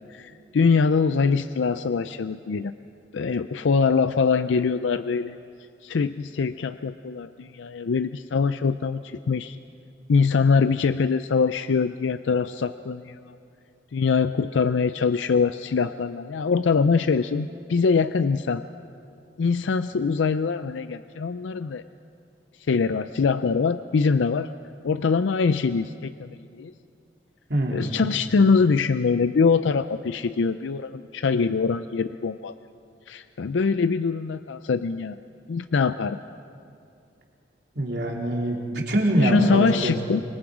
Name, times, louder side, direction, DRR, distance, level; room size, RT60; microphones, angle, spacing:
voice 1, 0.0-2.7 3.1-5.4 5.8-9.6 10.1-13.4 13.9-18.7 19.4-21.8 22.7-24.5 24.8-26.7 27.7-32.5 33.1-35.2 35.5-36.2 39.2-40.2, left 5 dB, 90° left, 11 dB, 0.4 m, -23 dB
voice 2, 27.5-27.9 37.7-38.6 38.9-39.9, right 1 dB, 70° right, -1 dB, 3.3 m, -23 dB
25.0 x 22.0 x 5.0 m, 2.5 s
head